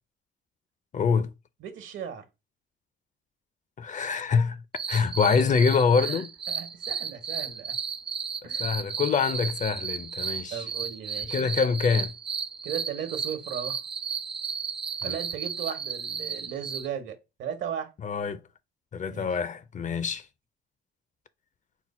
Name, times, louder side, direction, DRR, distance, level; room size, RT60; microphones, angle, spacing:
voice 1, 0.9-1.3 3.8-4.6 4.9-6.3 8.4-10.6 11.3-12.1 15.0-15.2 18.0-18.4 18.9-20.3, left 5 dB, 40° left, 0.4 m, -25 dB
voice 2, 1.6-2.2 6.0-7.7 8.4-8.7 10.5-11.5 12.6-13.8 15.0-17.9 19.1-19.3 19.8-20.1, right 8 dB, 75° right, 1.1 m, -37 dB
sound 1, 4.8-16.9, right 6 dB, 25° right, 0.4 m, -34 dB
4.4 x 2.0 x 4.1 m
cardioid pair, 90°, 20 cm